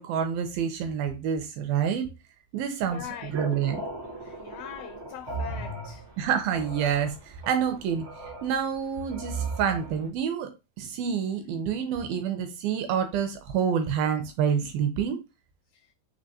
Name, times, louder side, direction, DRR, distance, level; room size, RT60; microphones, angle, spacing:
voice 1, 0.0-2.1 2.5-3.8 6.2-8.1 8.4-10.5 10.8-15.2, right 7 dB, 80° right, 2.2 m, -28 dB
voice 2, 2.9-3.3 4.2-6.0, left 10 dB, 85° left, 2.1 m, -41 dB
sound 1, 2.9-10.1, right 3 dB, 60° right, 0.8 m, -38 dB
6.3 x 3.0 x 2.8 m
omnidirectional pair, 4.8 m